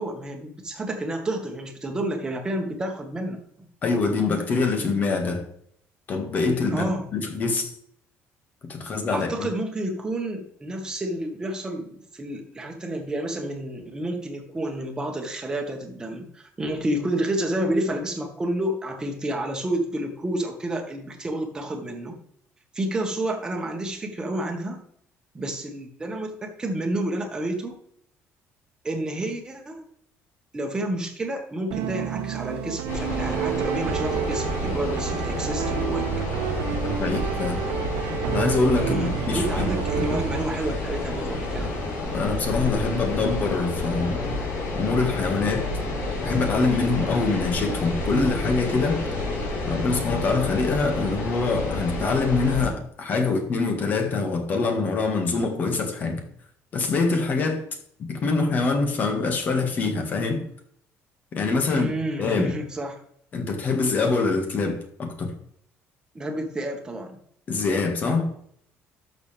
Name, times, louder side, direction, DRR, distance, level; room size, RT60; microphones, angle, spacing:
voice 1, 0.0-3.4 6.7-7.1 9.1-22.2 22.7-24.8 25.3-27.8 28.8-29.8 30.5-36.1 38.7-41.7 61.6-63.0 66.1-67.2, right 1 dB, 15° right, 2 dB, 1.6 m, -30 dB
voice 2, 3.8-5.5 6.1-7.7 8.7-9.5 36.8-37.6 38.3-39.7 39.9-40.2 42.1-44.4 44.7-45.7 46.2-49.0 49.7-56.3 56.7-57.6 58.0-60.4 61.3-62.6 63.3-65.3 67.5-68.3, left 4 dB, 35° left, 4 dB, 1.8 m, -25 dB
sound 1, 31.7-40.5, right 12 dB, 80° right, 0.6 m, -29 dB
sound 2, 32.9-52.7, left 2 dB, 60° left, 4.3 m, -29 dB
11.5 x 6.8 x 3.4 m, 0.68 s
cardioid pair, 165°, 5 cm